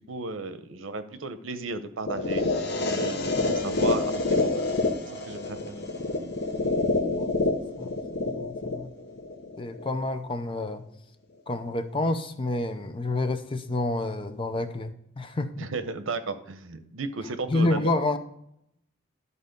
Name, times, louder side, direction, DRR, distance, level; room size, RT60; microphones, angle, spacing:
voice 1, 0.1-2.4 2.9-4.6 5.1-5.8 15.6-17.9, right 3 dB, 85° right, 11 dB, 0.7 m, -34 dB
sound 1, 2.1-10.1, left 2 dB, 60° left, 0.9 m, -27 dB
voice 2, 6.9-7.3 7.8-7.9 8.2-8.9 9.6-10.8 11.5-15.5 17.5-18.2, left 2 dB, 25° left, 10 dB, 0.5 m, -29 dB
11.5 x 4.2 x 5.2 m, 0.75 s
head